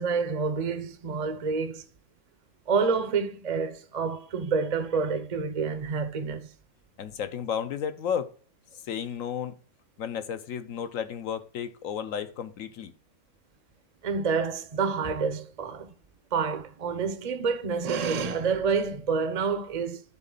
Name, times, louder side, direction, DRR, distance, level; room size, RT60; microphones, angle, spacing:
voice 1, 0.0-1.8 2.7-6.5 14.0-15.9 16.3-20.0, right 5 dB, 35° right, 0.7 m, -28 dB
voice 2, 7.0-8.3 8.9-9.6 10.0-12.9, left 8 dB, 65° left, 1.1 m, -33 dB
9.8 x 4.2 x 3.9 m
omnidirectional pair, 1.6 m